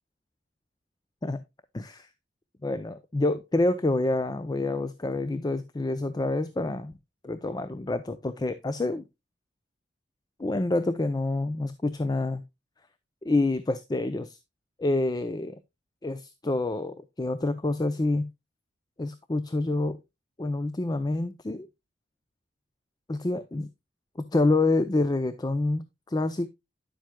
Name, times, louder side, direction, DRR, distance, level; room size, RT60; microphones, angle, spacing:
voice 1, 1.7-2.1 2.6-7.0 7.2-9.0 10.4-12.4 13.2-14.4 14.8-15.6 16.0-18.3 19.0-20.0 20.4-21.7 23.1-23.7 24.2-26.5, left 2 dB, 20° left, 0.5 m, -27 dB
10.5 x 7.5 x 2.2 m
head